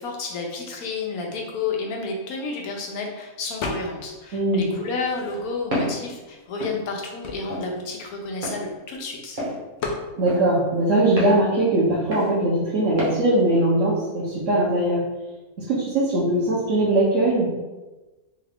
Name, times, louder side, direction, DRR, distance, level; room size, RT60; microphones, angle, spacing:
voice 1, 0.0-9.4, left 3 dB, 85° left, 1 dB, 1.2 m, -31 dB
sound 1, 3.6-4.2 4.5-5.8 6.4-6.5 6.7-9.0 9.8-10.1, left 3 dB, 65° left, 0.7 m, -34 dB
voice 2, 4.3-4.6 10.2-15.0 15.7-17.5, right 1 dB, 65° right, -6 dB, 1.1 m, -21 dB
Walk footsteps, 5.7-6.0 6.6-6.8 7.5-7.7 8.4-8.6 9.4-9.6 10.3-10.4 11.2-11.4 12.1-12.3 13.0-13.2, equal, 40° right, 0.9 m, -28 dB
3.6 x 2.4 x 3.4 m, 1.1 s
omnidirectional pair, 1.5 m